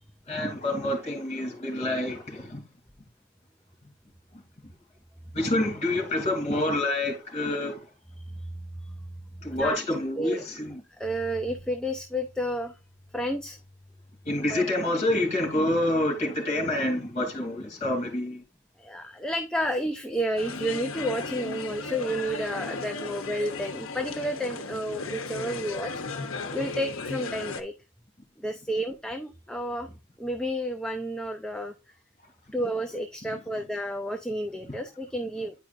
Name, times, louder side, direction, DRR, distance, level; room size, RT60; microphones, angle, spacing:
voice 1, 0.3-2.6 4.3-4.4 5.3-7.8 9.4-10.8 14.2-18.4 34.6-34.7, left 1 dB, 30° left, 2.7 m, -27 dB
voice 2, 11.0-12.7 13.1-13.6 14.5-14.6 18.8-25.9 26.5-27.7 28.4-29.9 30.2-31.7 32.5-35.5, equal, 5° left, 0.5 m, -31 dB
sound 1, 20.4-27.6, left 3 dB, 65° left, 1.0 m, -35 dB
9.8 x 4.8 x 2.5 m
head